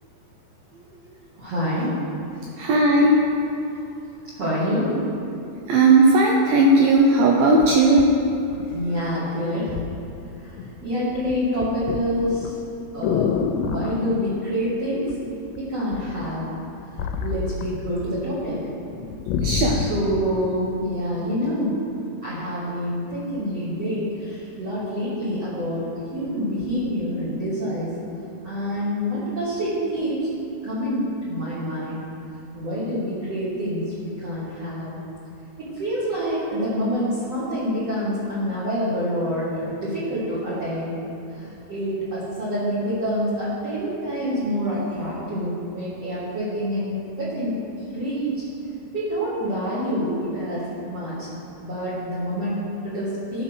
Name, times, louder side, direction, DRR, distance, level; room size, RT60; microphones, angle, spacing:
voice 1, 1.4-2.0 2.3-2.5 4.4-5.0 8.6-9.8 10.4-10.6 10.8-12.5 12.9-15.2 15.6-16.5 17.2-18.7 19.7-21.7 22.2-27.9 28.4-30.3 30.6-32.0 32.5-34.9 35.6-41.0 41.3-48.4 48.9-51.3 51.6-53.4, equal, 50° right, -11 dB, 2.2 m, -27 dB
voice 2, 2.6-3.2 5.7-8.1 19.4-19.8, right 2 dB, 85° right, -1 dB, 2.0 m, -16 dB
sound 1, 7.0-7.1 7.6-9.1 9.8-10.0 10.3-10.8 11.1-14.0 15.1-15.6 15.9-18.2 18.5-18.6 18.9-20.1 20.7-20.8, left 6 dB, 90° left, 2.8 m, -28 dB
12.5 x 4.4 x 6.3 m, 2.8 s
omnidirectional pair, 4.9 m